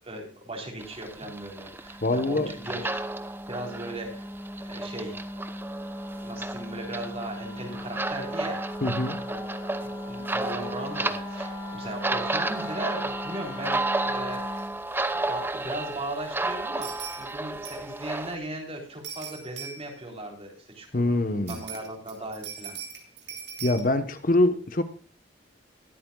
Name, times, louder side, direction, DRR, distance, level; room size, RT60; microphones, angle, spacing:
voice 1, 0.0-4.3 4.6-5.2 6.2-8.6 9.2-9.5 9.8-14.6 15.1-22.8, right 1 dB, 35° right, 3.7 m, -38 dB
sound 1, 0.8-18.4, right 2 dB, 10° right, 0.8 m, -33 dB
Wind instrument woodwind instrument, 1.8-14.7, left 1 dB, 30° left, 2.7 m, -39 dB
voice 2, 2.0-2.5 8.8-9.2 20.9-21.6 23.6-24.8, left 2 dB, 45° left, 1.0 m, -24 dB
sound 2, 14.6-14.7 15.0-15.1 16.8-17.3 17.6-18.0 19.0-20.0 21.5-23.8, right 7 dB, 65° right, 2.9 m, -40 dB
21.0 x 8.5 x 2.3 m
head